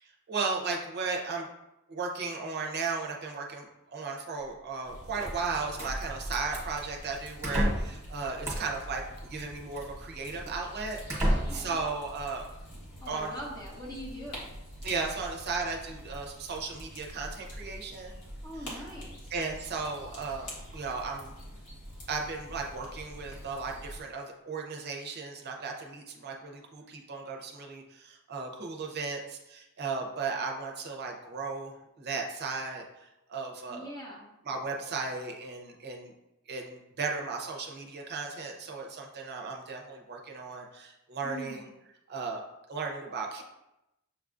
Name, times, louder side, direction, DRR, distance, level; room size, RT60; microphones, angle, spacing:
voice 1, 0.0-1.5 1.9-12.5 13.1-13.4 14.8-18.1 19.3-21.3 22.1-33.9 34.4-36.1 36.5-41.6 42.1-42.4 42.7-43.4, right 4 dB, 45° right, 1 dB, 0.6 m, -36 dB
sound 1, 4.8-24.0, equal, 85° left, 1.3 m, -45 dB
sound 2, 5.1-5.9 6.5-6.8 7.4-8.0 8.4-8.9 9.8-9.9 10.5-10.6 11.1-11.7, equal, 10° right, 1.0 m, -30 dB
voice 2, 11.2-11.7 13.0-14.5 18.4-19.2 33.7-34.3 41.2-41.7, equal, 15° left, -4 dB, 0.7 m, -42 dB
6.9 x 2.3 x 2.5 m, 0.92 s
head